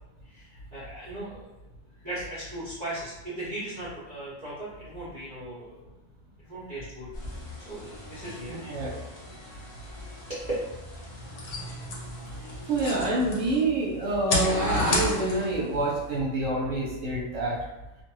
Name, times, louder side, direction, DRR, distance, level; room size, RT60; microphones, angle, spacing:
voice 1, 0.2-1.5 2.0-5.8 6.4-7.1 7.7-8.6 10.3-10.4, right 1 dB, 35° right, -12 dB, 0.9 m, -38 dB
sound 1, 7.1-13.1, left 1 dB, 35° left, 0.4 m, -43 dB
voice 2, 8.5-8.9 12.7-17.6, right 2 dB, 60° right, -3 dB, 1.2 m, -27 dB
sound 2, 11.3-13.6 14.1-15.7, left 2 dB, 70° left, 1.0 m, -29 dB
2.6 x 2.5 x 3.0 m, 1.0 s
omnidirectional pair, 1.5 m